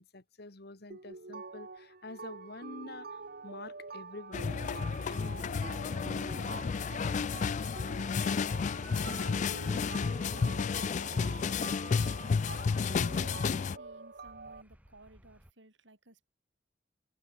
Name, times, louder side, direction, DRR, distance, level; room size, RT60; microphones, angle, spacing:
voice 1, 0.0-5.6, left 2 dB, 60° left, 2.0 m, -48 dB
sound 1, 0.9-14.6, right 4 dB, 55° right, 1.6 m, -46 dB
sound 2, 3.2-15.5, equal, 10° right, 6.8 m, -66 dB
sound 3, 4.3-13.8, left 5 dB, 40° left, 0.3 m, -32 dB
voice 2, 8.9-12.4 13.1-16.3, right 2 dB, 80° right, 5.8 m, -56 dB
head